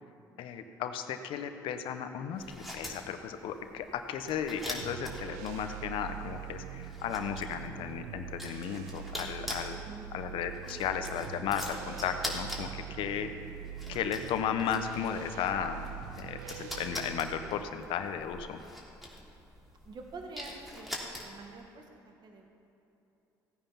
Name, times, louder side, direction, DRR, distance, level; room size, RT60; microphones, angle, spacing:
voice 1, 0.4-9.8 10.1-13.3 13.9-15.8 16.2-18.6, left 8 dB, 70° left, 8 dB, 1.0 m, -35 dB
sound 1, 2.3-21.6, left 1 dB, ahead, 3.2 m, -44 dB
sound 2, 4.8-17.6, right 11 dB, 85° right, 0.4 m, -44 dB
voice 2, 19.8-22.5, right 3 dB, 50° right, 2 dB, 1.8 m, -47 dB
16.0 x 9.0 x 5.8 m, 2.8 s
hypercardioid pair, 60°, 9 cm